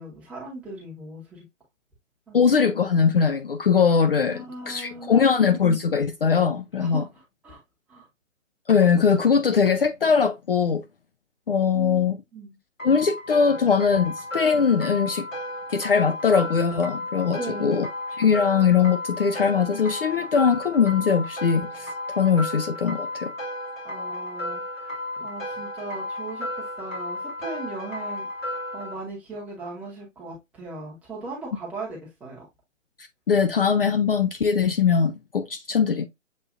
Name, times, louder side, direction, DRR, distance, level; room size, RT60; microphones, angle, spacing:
voice 1, 0.0-1.4 2.3-2.5 4.2-5.3 6.8-7.6 7.9-8.1 11.7-12.6 17.4-17.8 23.8-32.5, right 2 dB, 5° right, 0.9 m, -39 dB
voice 2, 2.3-7.0 8.7-10.8 11.5-12.2 12.8-15.3 15.7-17.9 18.2-21.9 22.2-23.3 33.0-36.0, left 6 dB, 45° left, 0.5 m, -21 dB
sound 1, 12.8-28.9, left 1 dB, 80° left, 2.4 m, -34 dB
7.2 x 2.6 x 2.5 m
figure-of-eight pair, 145°, 39 cm